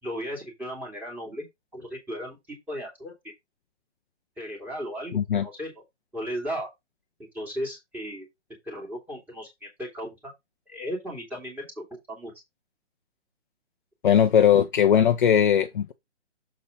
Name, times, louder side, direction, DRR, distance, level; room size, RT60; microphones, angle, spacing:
voice 1, 0.0-1.5 1.7-3.1 4.4-5.8 6.1-6.7 7.3-8.3 8.6-10.3 10.7-12.3, equal, 5° right, 2.6 m, -36 dB
voice 2, 5.1-5.5 14.0-15.9, left 9 dB, 45° left, 0.8 m, -19 dB
7.2 x 4.1 x 5.0 m
hypercardioid pair, 160°, 36 cm